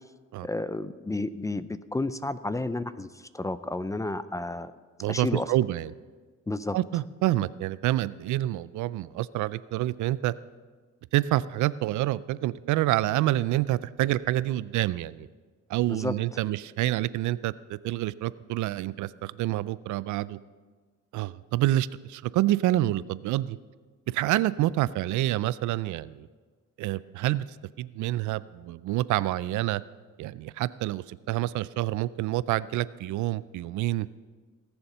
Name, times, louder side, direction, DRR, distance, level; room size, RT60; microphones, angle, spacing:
voice 1, 0.4-4.7 5.1-5.5 6.5-6.8 15.9-16.1, left 2 dB, 10° left, 14 dB, 0.4 m, -31 dB
voice 2, 5.0-5.9 6.7-10.3 11.1-15.3 15.7-20.4 21.1-23.6 24.1-26.3 26.8-27.5 27.8-29.8 30.2-34.1, right 15 dB, 80° right, 18 dB, 0.4 m, -27 dB
18.0 x 7.1 x 5.5 m, 1.4 s
cardioid pair, 105°, 30 cm